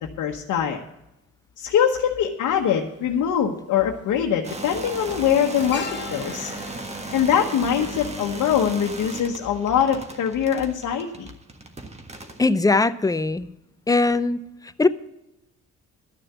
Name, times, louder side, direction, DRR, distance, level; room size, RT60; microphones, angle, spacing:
voice 1, 0.2-0.8 1.6-5.9 6.1-6.5 7.1-11.3, left 8 dB, 80° left, 0 dB, 1.2 m, -23 dB
sound 1, 2.6-2.7 3.9-4.2 4.4-8.7 9.0-9.2, left 6 dB, 35° left, 1.2 m, -39 dB
sound 2, 4.4-12.5, right 2 dB, 20° right, 1.5 m, -36 dB
voice 2, 12.4-13.5 13.9-14.4 14.8-14.9, left 3 dB, 10° left, 13 dB, 0.6 m, -20 dB
12.0 x 6.7 x 8.3 m, 0.90 s
cardioid pair, 90°, 30 cm